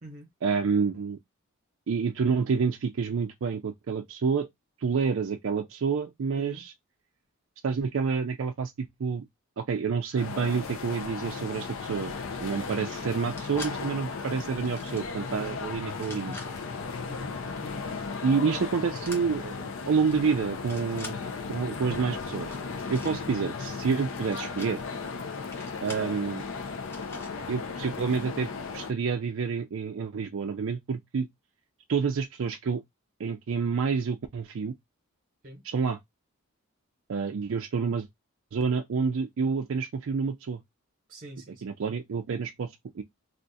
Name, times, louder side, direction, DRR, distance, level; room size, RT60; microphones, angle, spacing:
voice 1, 0.4-1.2 1.9-4.5 4.8-6.7 7.6-9.2 9.6-12.1 12.4-16.3 18.2-21.2 21.5-22.5 22.9-24.8 25.8-26.4 27.5-31.3 31.9-32.8 33.2-34.7 35.6-36.0 37.1-38.1 38.5-40.6 41.6-43.0, right 5 dB, 60° right, 0.4 m, -28 dB
voice 2, 6.3-6.6 12.6-12.9 17.0-17.3 17.6-18.0 35.4-35.6 41.1-41.6, right 1 dB, 35° right, 0.9 m, -45 dB
sound 1, 10.2-28.9, left 4 dB, 60° left, 0.5 m, -36 dB
sound 2, 13.1-13.7 14.5-15.1 15.9-16.5 18.9-19.2 19.9-20.2 20.5-21.1 22.4-23.1 24.1-24.7 25.5-26.1 26.8-27.3, left 2 dB, 10° left, 0.6 m, -45 dB
2.4 x 2.4 x 3.9 m
head